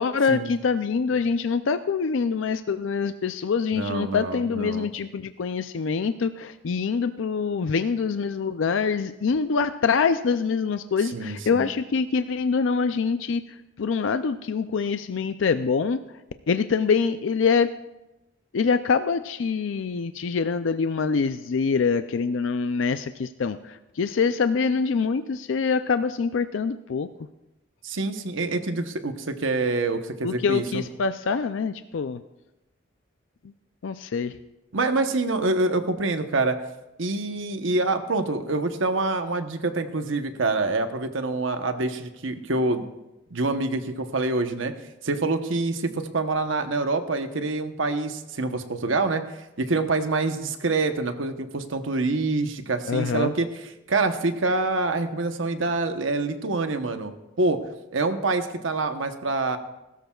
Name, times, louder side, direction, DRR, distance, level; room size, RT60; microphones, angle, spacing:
voice 1, 0.0-13.4 13.8-16.0 16.5-17.7 18.5-27.1 30.2-32.2 33.8-34.3 52.9-53.3, left 5 dB, 75° left, 10 dB, 0.4 m, -25 dB
voice 2, 3.7-4.9 11.1-11.7 27.8-30.8 34.7-36.6 37.0-42.8 43.3-44.7 45.0-49.2 49.6-57.6 57.9-59.6, right 3 dB, 80° right, 8 dB, 1.0 m, -26 dB
20.0 x 13.0 x 2.4 m, 0.96 s
head